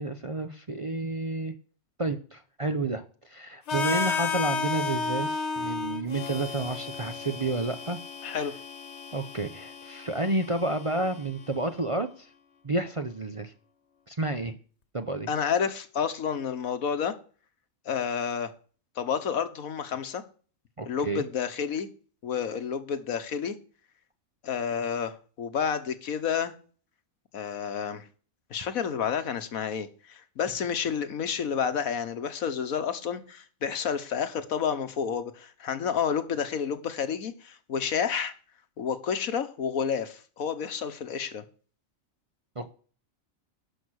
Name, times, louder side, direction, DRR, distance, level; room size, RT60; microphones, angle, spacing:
voice 1, 0.0-1.5 2.0-8.0 8.3-8.4 9.1-12.3 12.6-13.5 14.1-14.5 14.9-15.3 20.8-21.2 42.6-42.7, right 2 dB, 30° right, 7 dB, 0.6 m, -30 dB
Harmonica, 3.7-11.6, left 4 dB, 55° left, 1.5 m, -33 dB
voice 2, 8.2-8.5 15.3-17.1 17.8-18.5 19.0-20.2 20.9-21.9 22.2-23.6 24.4-26.5 27.3-28.0 28.5-38.3 38.8-41.4, left 7 dB, 85° left, 10 dB, 1.5 m, -30 dB
11.5 x 6.0 x 6.4 m, 0.41 s
omnidirectional pair, 1.4 m